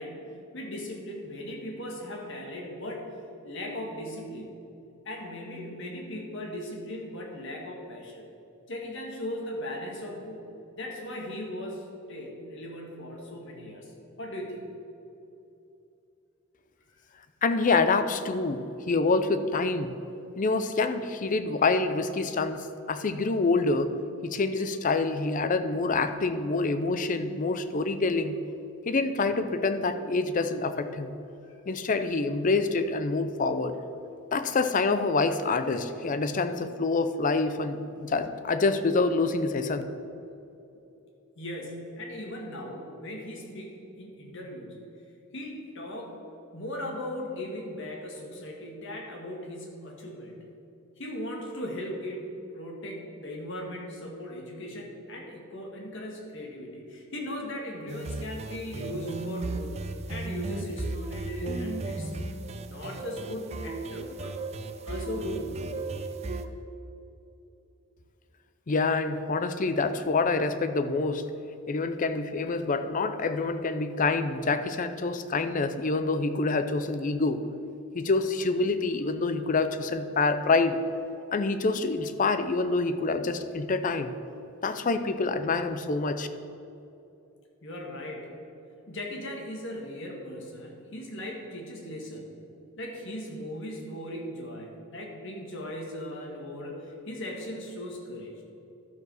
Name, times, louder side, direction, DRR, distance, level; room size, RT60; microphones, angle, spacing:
voice 1, 0.0-3.1 3.4-4.5 5.0-8.2 8.7-10.4 10.8-13.9 14.2-14.6 31.4-31.6 41.3-44.8 45.3-46.1 46.5-50.4 51.0-59.7 60.1-62.1 62.7-64.4 64.8-65.8 87.6-88.3 88.9-92.3 92.8-98.5, left 1 dB, 60° left, 0 dB, 1.7 m, -38 dB
voice 2, 17.4-19.9 20.4-23.9 24.2-28.4 28.9-31.1 31.7-33.8 34.3-39.8 68.7-71.3 71.7-77.4 77.9-80.8 81.3-84.1 84.6-86.3, left 3 dB, 40° left, 10 dB, 0.5 m, -26 dB
sound 1, 57.9-66.5, right 2 dB, 30° right, 0.4 m, -35 dB
12.5 x 4.9 x 6.3 m, 2.8 s
head